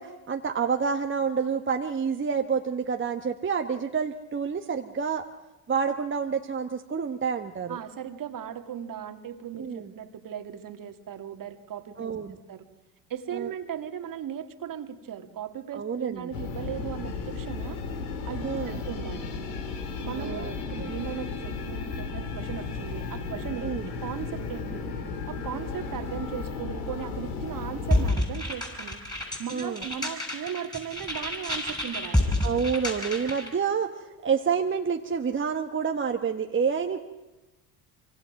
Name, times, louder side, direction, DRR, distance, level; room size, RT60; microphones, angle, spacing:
voice 1, 0.0-5.2 5.7-7.8 9.6-9.9 12.0-12.4 13.3-13.5 15.7-16.3 18.4-18.8 20.1-20.9 23.6-23.9 29.5-29.8 32.4-37.0, right 6 dB, 25° right, 4 dB, 1.4 m, -28 dB
voice 2, 7.7-12.1 12.5-12.6 13.1-17.8 18.3-19.3 20.0-24.9 25.3-29.0 29.4-32.3, right 8 dB, 45° right, 7 dB, 2.2 m, -37 dB
sound 1, 16.3-28.1, left 4 dB, 80° left, 3.0 m, -34 dB
sound 2, 27.9-33.5, left 1 dB, 10° left, 6.8 m, -29 dB
25.0 x 25.0 x 6.0 m, 1.1 s
hypercardioid pair, 65°, 45 cm